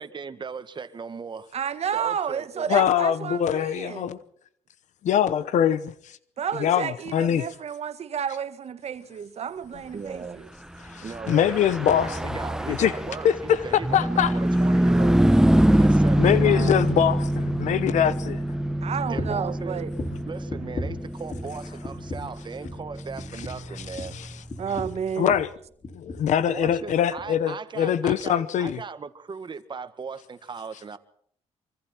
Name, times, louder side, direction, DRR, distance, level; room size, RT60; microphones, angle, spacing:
voice 1, 0.0-1.5 1.9-2.8 9.9-10.4 11.0-15.3 15.8-16.9 19.1-19.8 20.2-24.1 26.5-31.0, right 5 dB, 40° right, 1.7 m, -38 dB
voice 2, 1.5-4.1 6.4-10.5 18.8-19.9 24.6-25.3, right 8 dB, 60° right, 1.7 m, -31 dB
voice 3, 2.7-4.2 5.1-6.2 6.6-7.5 10.8-12.2 12.7-12.9 13.2-14.3 16.2-18.4 23.9-24.3 25.2-25.5 25.9-28.8, left 9 dB, 85° left, 0.9 m, -23 dB
Car passing by / Truck, 11.1-24.8, right 1 dB, 5° right, 0.9 m, -24 dB
sound 1, 19.2-19.5 19.9-21.6 21.8-22.4 22.6-22.9 23.2-25.5 25.8-26.3 26.6-26.8 27.2-27.3, left 2 dB, 35° left, 4.2 m, -36 dB
24.5 x 24.5 x 4.5 m
cardioid pair, 100°, 12 cm